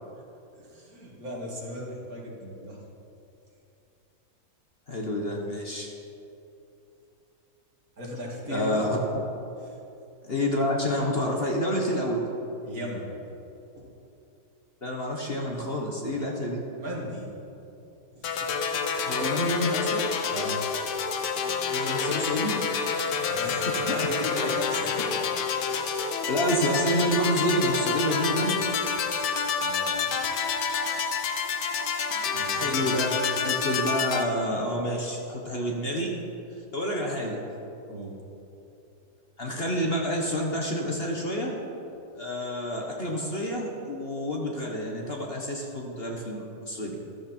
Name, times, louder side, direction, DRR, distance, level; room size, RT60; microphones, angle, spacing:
voice 1, 0.6-2.8 8.0-8.9 9.6-9.8 12.6-13.1 13.8-13.9 16.8-17.3 18.1-18.5 20.3-20.6 23.3-23.7 24.1-25.0 29.1-30.1 32.3-33.0 37.9-38.2, equal, 60° right, -3 dB, 2.9 m, -37 dB
voice 2, 4.9-5.9 8.5-9.0 10.2-12.3 14.8-16.6 19.0-20.1 21.7-22.5 23.4-24.1 25.0-25.1 26.3-28.6 32.1-33.1 33.4-36.1 36.7-37.4 39.4-41.5 42.1-46.9, equal, 40° left, -1 dB, 1.5 m, -28 dB
sound 1, 18.2-34.2, left 6 dB, 90° left, 1.5 m, -28 dB
14.5 x 12.5 x 4.5 m, 2.8 s
omnidirectional pair, 1.8 m